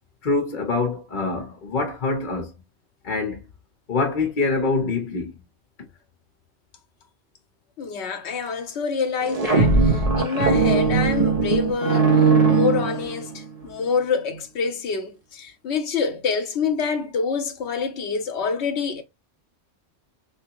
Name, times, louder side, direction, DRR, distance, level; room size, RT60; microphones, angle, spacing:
voice 1, 0.2-2.5 3.0-3.5 3.9-5.3, left 3 dB, 45° left, 1.0 m, -25 dB
voice 2, 7.8-19.0, left 5 dB, 70° left, 1.0 m, -26 dB
sound 1, 9.2-13.5, right 4 dB, 35° right, 0.8 m, -19 dB
3.4 x 3.1 x 2.9 m
omnidirectional pair, 1.2 m